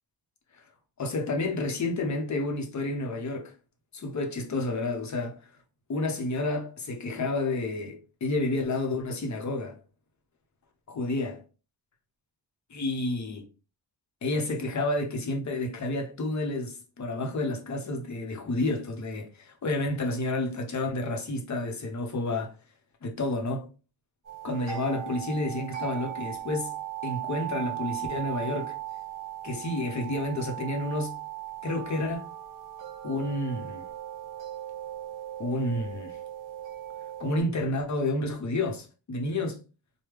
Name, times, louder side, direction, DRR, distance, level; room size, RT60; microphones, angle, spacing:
voice 1, 1.0-3.5 3.9-5.4 5.9-9.8 10.9-11.4 12.7-13.4 14.2-22.5 23.0-23.7 24.4-26.7 27.0-28.8 29.4-31.2 31.6-32.3 33.0-33.9 35.4-36.2 37.2-39.6, left 2 dB, 40° left, 0.8 m, -30 dB
sound 1, 24.2-37.4, right 13 dB, 45° right, 1.4 m, -38 dB
3.2 x 2.2 x 3.4 m
wide cardioid pair, 130°, 43 cm